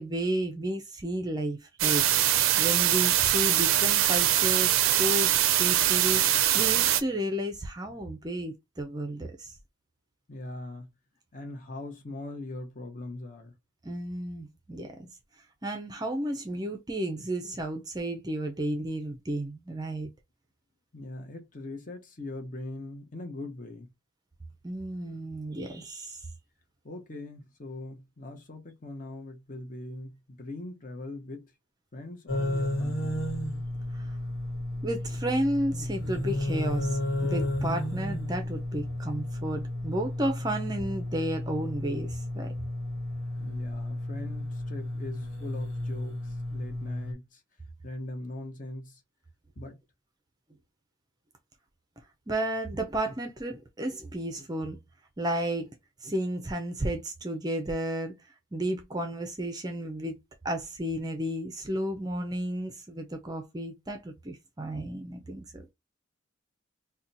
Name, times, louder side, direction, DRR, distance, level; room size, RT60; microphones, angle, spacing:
voice 1, 0.0-2.0 2.6-4.7 5.0-9.5 13.8-15.1 15.6-20.1 24.6-26.2 33.9-34.1 34.8-42.5 52.3-54.8 55.2-55.7 56.0-58.1 58.5-60.2 60.4-65.7, right 1 dB, 20° right, 0.4 m, -32 dB
sound 1, 1.8-7.0, right 12 dB, 75° right, 0.4 m, -23 dB
voice 2, 10.3-10.9 11.3-13.5 20.9-23.9 26.8-31.5 31.9-33.2 43.4-47.4 47.8-49.0 49.6-49.8, left 2 dB, 40° left, 0.7 m, -41 dB
sound 2, 32.3-47.1, left 1 dB, 70° left, 1.2 m, -32 dB
2.8 x 2.2 x 3.9 m
head